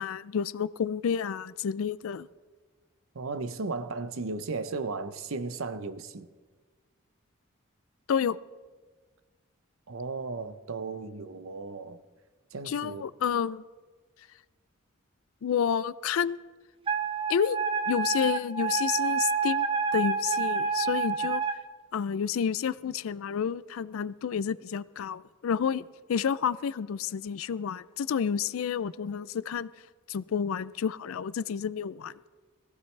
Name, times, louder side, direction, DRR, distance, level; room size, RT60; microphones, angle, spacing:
voice 1, 0.0-2.3 8.1-8.4 12.7-13.6 15.4-16.4 17.3-17.6 17.9-21.4 21.9-29.7 30.1-32.1, left 7 dB, 80° left, 0.4 m, -30 dB
voice 2, 3.1-6.3 9.9-12.0 12.5-13.1, right 3 dB, 80° right, 0.7 m, -35 dB
Wind instrument woodwind instrument, 16.9-21.6, right 5 dB, 25° right, 0.8 m, -28 dB
21.0 x 15.0 x 3.3 m
head